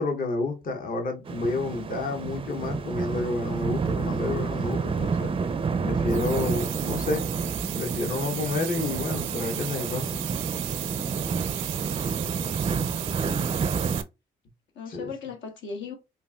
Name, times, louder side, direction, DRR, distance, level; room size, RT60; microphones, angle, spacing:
voice 1, 0.0-5.3 5.8-7.2 7.8-10.3 14.9-15.0, left 3 dB, 45° left, 0.9 m, -30 dB
sound 1, 1.3-14.0, right 5 dB, 25° right, 0.4 m, -29 dB
sound 2, 6.1-14.0, right 14 dB, 85° right, 0.4 m, -35 dB
voice 2, 12.0-12.7 13.0-13.5 14.7-16.0, left 5 dB, 70° left, 1.1 m, -39 dB
5.2 x 2.5 x 2.3 m
cardioid pair, 90°, 20 cm